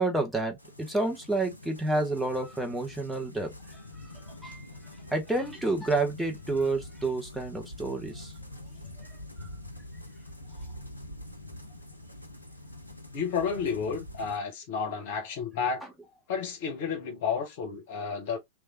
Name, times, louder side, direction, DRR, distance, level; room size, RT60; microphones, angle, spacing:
voice 1, 0.0-8.3 9.0-9.5, right 2 dB, ahead, 0.8 m, -30 dB
sound 1, 0.6-14.4, left 1 dB, 90° left, 0.5 m, -45 dB
voice 2, 13.1-15.8 16.3-18.4, left 6 dB, 50° left, 1.0 m, -31 dB
3.1 x 2.3 x 2.8 m
figure-of-eight pair, 90°, 0 cm